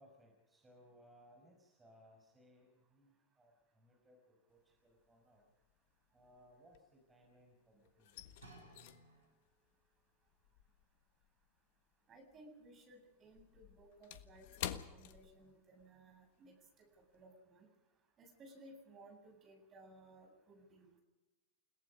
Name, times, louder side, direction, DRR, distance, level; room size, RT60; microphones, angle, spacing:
voice 1, 0.0-5.5 6.1-8.2, equal, 15° right, 1 dB, 5.7 m, -65 dB
sound 1, 4.6-5.1 5.4-7.4 7.7-12.4 12.6-16.0 16.3-16.5 16.9-17.2, left 11 dB, 60° left, 1.4 m, -50 dB
sound 2, 8.4-9.7 10.4-10.5, right 2 dB, 85° right, 6.3 m, -60 dB
voice 2, 12.1-16.8 17.1-17.7 18.2-20.9, right 1 dB, 30° right, 4 dB, 7.9 m, -60 dB
29.5 x 18.0 x 5.1 m, 1.1 s
figure-of-eight pair, 90°, 0 cm